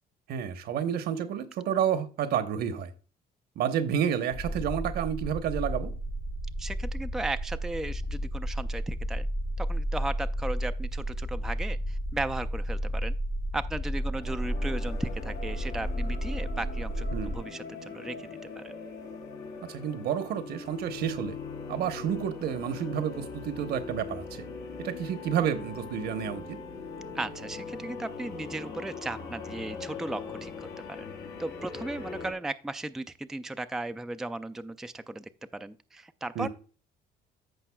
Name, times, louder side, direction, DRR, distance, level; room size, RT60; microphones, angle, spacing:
voice 1, 0.3-2.9 3.6-5.9 17.1-17.4 19.6-21.4 21.7-24.4 24.8-26.6 36.3-36.5, right 8 dB, 70° right, 1.0 m, -30 dB
sound 1, 4.3-17.4, equal, 65° left, 3.3 m, -32 dB
voice 2, 6.6-9.3 9.6-13.1 13.5-18.7 27.1-31.1 31.4-36.5, right 2 dB, 5° right, 0.4 m, -36 dB
sound 2, 13.9-32.3, left 4 dB, 85° left, 3.9 m, -41 dB
14.5 x 5.3 x 2.3 m
cardioid pair, 110°, 17 cm